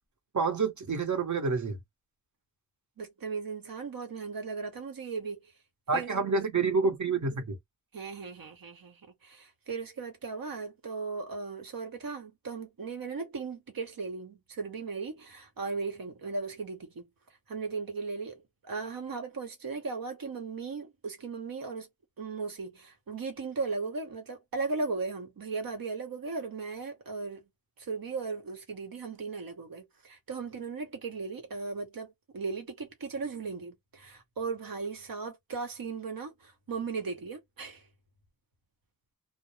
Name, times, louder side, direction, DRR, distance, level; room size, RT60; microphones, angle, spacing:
voice 1, 0.3-1.8 5.9-7.6, right 4 dB, 60° right, 0.8 m, -28 dB
voice 2, 3.0-5.4 5.9-6.1 7.9-17.1 17.5-21.9 22.2-27.5 27.8-37.8, right 4 dB, 85° right, 1.0 m, -37 dB
2.4 x 2.0 x 2.9 m
wide cardioid pair, 70°, 34 cm